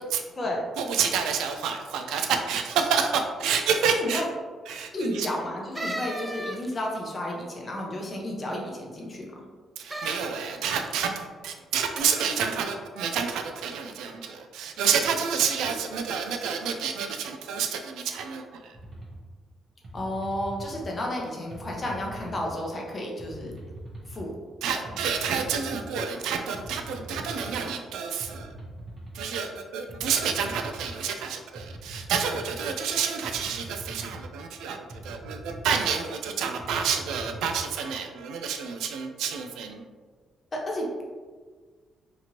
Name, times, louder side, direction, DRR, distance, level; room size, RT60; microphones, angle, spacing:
voice 1, 0.8-4.2 4.7-5.3 9.8-18.7 24.6-28.5 29.1-39.8, right 6 dB, 85° right, 5 dB, 0.3 m, -29 dB
voice 2, 3.9-4.3 4.9-9.4 19.9-23.5 24.1-24.3 40.5-41.0, left 1 dB, 35° left, -1 dB, 0.7 m, -32 dB
sound 1, 5.7-7.0 9.8-10.3 10.8-11.2 11.9-12.0, right 1 dB, 15° right, 0.4 m, -35 dB
sound 2, 18.7-19.2 19.8-20.9 21.5-22.5 23.2-24.2 24.9-25.9 26.5-27.6 28.2-29.2 29.9-30.9 31.6-32.6 33.2-34.3 34.9-35.9 36.6-37.6, right 1 dB, 45° right, 0.7 m, -42 dB
2.9 x 2.5 x 2.9 m, 1.5 s
cardioid pair, 90°, 0 cm